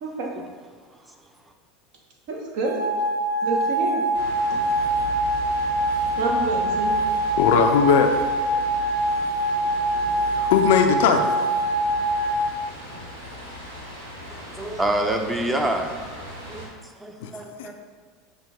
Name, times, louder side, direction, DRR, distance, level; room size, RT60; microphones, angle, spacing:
voice 1, 0.0-0.3 2.3-2.8 3.4-4.0 4.5-4.6 6.2-6.9, right 3 dB, 60° right, 0 dB, 0.8 m, -28 dB
sound 1, 2.6-12.3, right 1 dB, 35° right, 0.9 m, -24 dB
sound 2, 4.1-16.7, left 1 dB, 90° right, 0.9 m, -38 dB
voice 2, 7.4-8.1 10.4-11.4 17.2-17.3 17.6-17.7, left 7 dB, 70° left, 5 dB, 0.3 m, -19 dB
voice 3, 14.3-15.9 16.5-17.7, right 1 dB, 15° right, 4 dB, 0.5 m, -27 dB
5.7 x 2.2 x 3.5 m, 1.5 s
hypercardioid pair, 85°, 0 cm